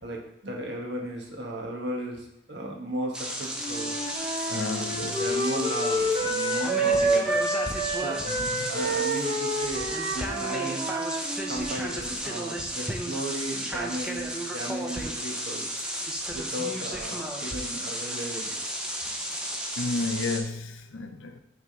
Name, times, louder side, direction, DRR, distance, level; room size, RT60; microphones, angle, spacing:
voice 1, 0.0-3.9 4.5-7.4 8.0-8.2 8.7-10.9 11.5-15.7 16.3-18.6, right 1 dB, 65° right, 1.3 m, -35 dB
sound 1, 3.1-20.4, equal, 5° right, 0.6 m, -33 dB
Wind instrument woodwind instrument, 3.6-11.7, right 1 dB, 30° right, 1.3 m, -28 dB
voice 2, 4.5-5.2 8.3-8.8 19.8-21.4, left 3 dB, 80° left, 0.6 m, -32 dB
6.0 x 3.5 x 5.2 m
head